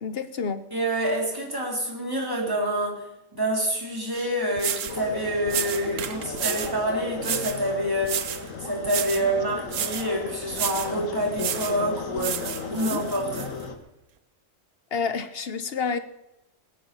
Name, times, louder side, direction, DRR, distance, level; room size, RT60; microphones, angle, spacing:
voice 1, 0.0-0.6 12.7-13.0 14.9-16.0, left 5 dB, 50° left, 11 dB, 1.0 m, -29 dB
voice 2, 0.7-3.0 3.3-13.5, right 1 dB, 15° right, -2 dB, 3.6 m, -27 dB
sound 1, 4.1-4.2 4.6-5.0 5.5-6.8 7.2-7.6 8.0-8.5 8.8-9.3 9.7-10.1 10.5-11.0 11.4-11.8 12.2-13.5, right 9 dB, 75° right, 1.2 m, -31 dB
sound 2, 4.9-13.8, left 4 dB, 85° left, 1.8 m, -36 dB
18.5 x 9.7 x 6.9 m, 0.94 s
omnidirectional pair, 1.3 m